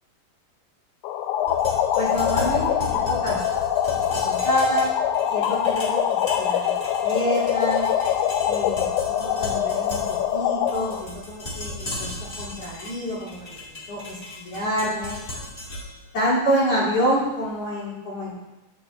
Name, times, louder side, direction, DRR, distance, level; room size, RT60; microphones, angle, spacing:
sound 1, 1.0-11.0, left 9 dB, 90° left, 2.7 m, -24 dB
sound 2, 1.4-17.5, left 2 dB, 25° left, 2.6 m, -36 dB
voice 1, 1.9-3.6 4.0-4.9 5.3-7.9 8.4-12.1 12.4-15.2 16.1-18.3, equal, 40° left, -8 dB, 4.7 m, -27 dB
11.0 x 11.0 x 2.8 m, 1.0 s
omnidirectional pair, 4.6 m